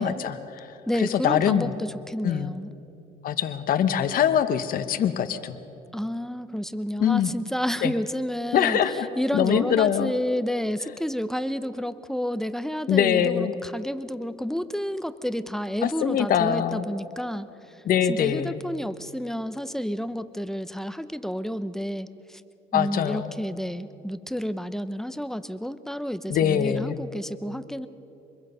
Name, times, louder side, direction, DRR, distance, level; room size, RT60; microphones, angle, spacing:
voice 1, 0.0-0.7 1.0-1.8 2.2-2.5 3.2-5.6 7.0-7.3 7.8-7.9 8.5-10.1 12.9-13.5 15.8-16.9 17.8-18.6 22.7-23.3 26.3-27.0, left 9 dB, 55° left, 9 dB, 1.0 m, -23 dB
voice 2, 0.9-2.7 5.9-8.8 9.2-17.5 18.1-22.4 22.7-27.9, equal, 5° left, 13 dB, 0.7 m, -30 dB
25.5 x 22.0 x 5.5 m, 3.0 s
cardioid pair, 110°, 17 cm